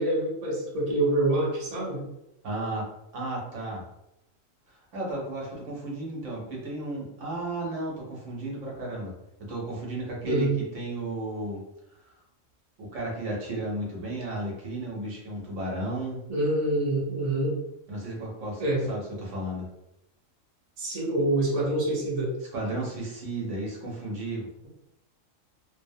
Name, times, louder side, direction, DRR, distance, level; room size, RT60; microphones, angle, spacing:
voice 1, 0.0-2.0 10.2-10.5 16.3-17.6 18.6-18.9 20.8-22.3, right 1 dB, 35° right, -5 dB, 0.7 m, -26 dB
voice 2, 2.4-3.8 4.7-9.1 9.5-11.6 12.0-12.2 12.8-16.2 17.9-18.6 18.9-19.7 22.5-24.5, right 2 dB, 70° right, -3 dB, 1.0 m, -34 dB
2.6 x 2.0 x 2.6 m, 0.85 s
omnidirectional pair, 1.4 m